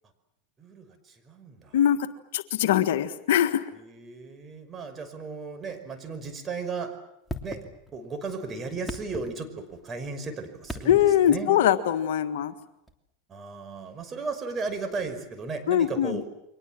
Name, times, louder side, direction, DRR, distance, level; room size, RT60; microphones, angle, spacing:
voice 1, 0.6-1.8 3.7-7.0 7.4-7.7 7.9-11.6 13.3-16.3, right 4 dB, 25° right, 7 dB, 5.7 m, -35 dB
voice 2, 2.3-3.7 10.9-12.5 15.7-16.2, left 10 dB, 70° left, 9 dB, 1.6 m, -22 dB
sound 1, 7.3-8.2 8.7-9.9 10.6-11.3 12.9-13.0, equal, 5° left, 3.1 m, -39 dB
29.5 x 24.0 x 7.7 m, 0.83 s
hypercardioid pair, 100°, 0 cm